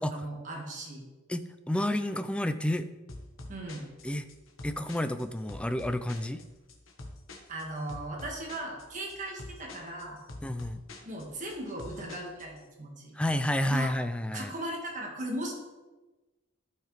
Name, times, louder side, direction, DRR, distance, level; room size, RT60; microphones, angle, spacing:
voice 1, 0.1-1.0 3.5-3.9 7.5-10.2 11.0-13.2 13.7-13.9 14.3-15.5, right 1 dB, 40° right, -1 dB, 1.7 m, -37 dB
voice 2, 1.3-2.9 4.0-4.2 4.6-6.4 10.4-10.8 13.1-14.5, left 1 dB, 5° left, 10 dB, 0.3 m, -30 dB
sound 1, 3.1-12.6, left 2 dB, 90° left, 1.1 m, -46 dB
12.5 x 5.8 x 3.3 m, 1.2 s
head